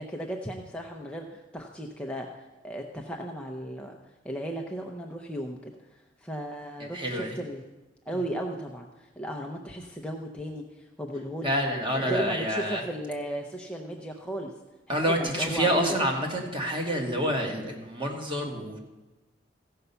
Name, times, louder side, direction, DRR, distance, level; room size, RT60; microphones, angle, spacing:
voice 1, 0.0-2.3 2.6-4.0 4.2-7.6 8.1-11.5 11.9-14.5 14.9-15.9, right 1 dB, 5° left, 1 dB, 0.6 m, -35 dB
voice 2, 6.8-7.4 11.4-12.8 14.9-18.8, equal, 25° right, 1 dB, 1.7 m, -28 dB
15.0 x 5.5 x 6.8 m, 1.1 s
head